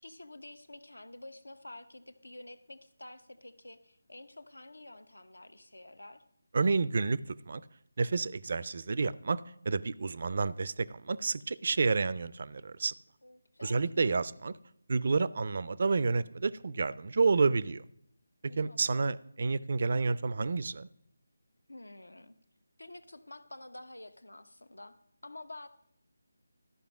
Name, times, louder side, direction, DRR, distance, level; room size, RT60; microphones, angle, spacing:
voice 1, 0.0-6.2 13.2-14.3 18.5-19.2 21.7-22.3 22.8-25.0 25.2-25.7, left 2 dB, 85° left, 0.8 m, -49 dB
voice 2, 6.5-7.2 7.5-7.6 8.0-9.4 9.7-12.9 13.6-14.5 14.9-17.8 18.6-20.9, right 4 dB, 50° right, 0.4 m, -29 dB
12.5 x 5.2 x 6.0 m
figure-of-eight pair, 160°, 0 cm